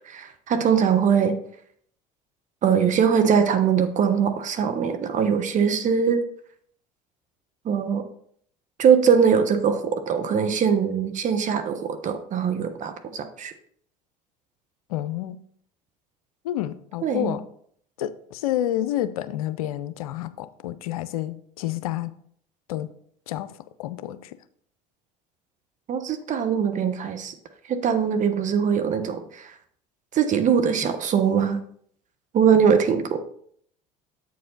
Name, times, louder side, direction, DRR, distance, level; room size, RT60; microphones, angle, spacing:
voice 1, 0.0-1.4 2.6-6.2 7.6-8.0 8.8-13.5 17.0-17.4 25.9-27.3 27.7-29.5 30.1-31.6 32.3-33.2, right 7 dB, 45° right, 1.1 m, -22 dB
voice 2, 14.9-15.4 16.4-17.4 18.0-22.1 22.7-22.9 23.3-23.5 23.8-24.4, left 13 dB, 80° left, 0.5 m, -29 dB
8.0 x 4.8 x 3.9 m
hypercardioid pair, 70°, 18 cm